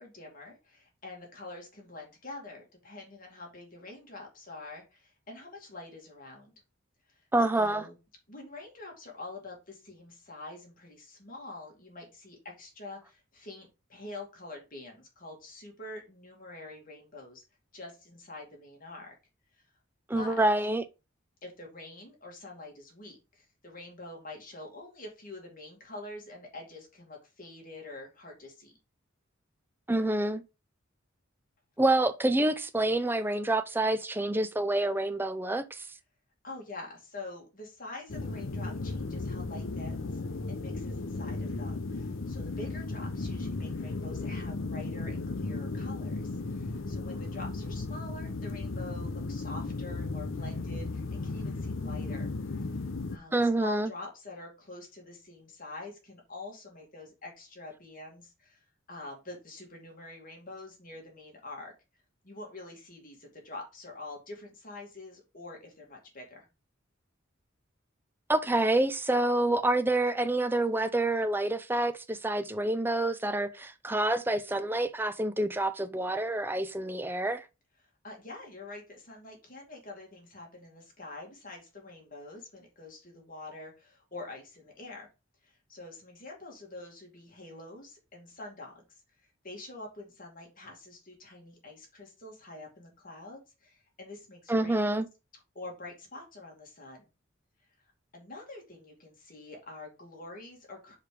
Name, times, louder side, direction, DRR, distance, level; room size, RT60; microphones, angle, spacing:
voice 1, 0.0-6.5 7.1-7.2 7.6-7.9 8.3-17.4 17.7-19.1 20.1-20.4 21.4-28.7 36.4-40.2 40.5-52.3 52.7-52.8 53.1-61.7 62.2-66.5 78.0-85.1 85.4-89.0 89.4-94.9 95.5-97.0 98.1-101.0, left 2 dB, 45° left, 2.4 m, -46 dB
voice 2, 7.3-7.9 20.1-20.8 29.9-30.4 31.8-35.9 53.3-53.9 68.3-77.4 94.5-95.1, right 2 dB, 10° right, 0.5 m, -27 dB
sound 1, 38.1-53.2, left 3 dB, 75° left, 0.7 m, -35 dB
4.9 x 4.9 x 4.9 m
head